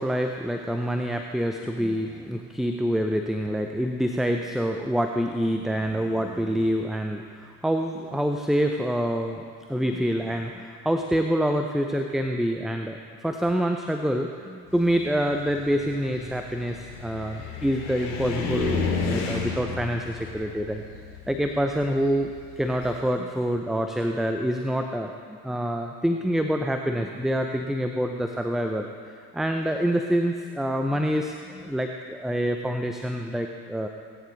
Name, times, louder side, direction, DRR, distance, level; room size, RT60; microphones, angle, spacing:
voice 1, 0.0-9.4 9.7-20.8 21.3-33.9, equal, ahead, 4 dB, 0.6 m, -26 dB
Car, 14.7-23.0, left 4 dB, 60° left, 2.8 m, -32 dB
18.5 x 9.6 x 4.0 m, 2.1 s
hypercardioid pair, 70°, 47 cm